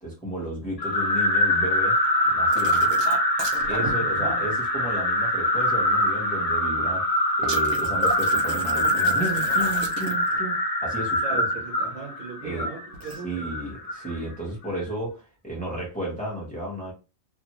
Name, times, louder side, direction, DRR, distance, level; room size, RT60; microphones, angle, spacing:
voice 1, 0.0-2.0 2.3-2.9 3.7-7.1 7.4-11.4 12.4-12.7 13.0-16.9, right 1 dB, 5° left, 0.9 m, -33 dB
sound 1, 0.8-14.2, left 1 dB, 45° left, 0.5 m, -24 dB
sound 2, 2.5-3.9 7.4-10.4 12.9-13.2, right 4 dB, 85° right, 1.1 m, -35 dB
voice 2, 3.9-4.6 11.2-13.5, right 4 dB, 70° right, 1.3 m, -38 dB
2.8 x 2.5 x 2.9 m
omnidirectional pair, 1.4 m